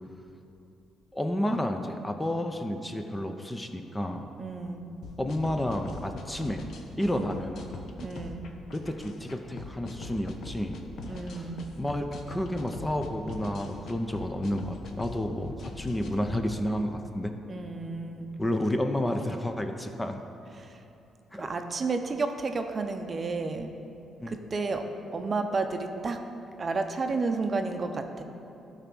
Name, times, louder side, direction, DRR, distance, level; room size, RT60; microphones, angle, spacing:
voice 1, 1.1-4.3 5.2-6.6 7.0-7.6 8.7-10.8 11.3-11.5 11.8-17.3 18.4-20.2 21.3-21.5 24.2-24.4, left 1 dB, 15° left, 5 dB, 0.6 m, -31 dB
voice 2, 4.4-4.9 8.0-8.4 11.0-11.7 17.5-18.3 20.5-20.8 21.3-23.7 24.3-24.9 25.1-26.2 26.6-28.2, right 3 dB, 35° right, 6 dB, 0.7 m, -31 dB
sound 1, 5.0-16.4, left 3 dB, 70° left, 0.8 m, -42 dB
12.0 x 4.1 x 6.0 m, 2.8 s
cardioid pair, 90°, 0 cm